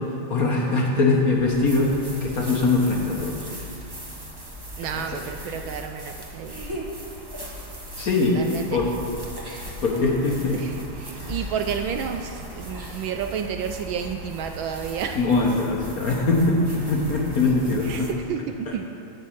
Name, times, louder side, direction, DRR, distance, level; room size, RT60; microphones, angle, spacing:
voice 1, 0.3-1.9 2.2-3.5 5.0-5.1 8.0-8.4 8.7-8.9 9.8-10.6 11.1-11.3 15.1-18.1, left 3 dB, 50° left, -1 dB, 1.3 m, -22 dB
sound 1, 1.3-18.1, equal, 30° right, 0.4 m, -38 dB
voice 2, 4.8-6.6 8.3-8.8 10.5-15.2 17.8-18.8, right 7 dB, 75° right, 6 dB, 1.2 m, -31 dB
10.5 x 5.3 x 8.6 m, 2.7 s
omnidirectional pair, 2.4 m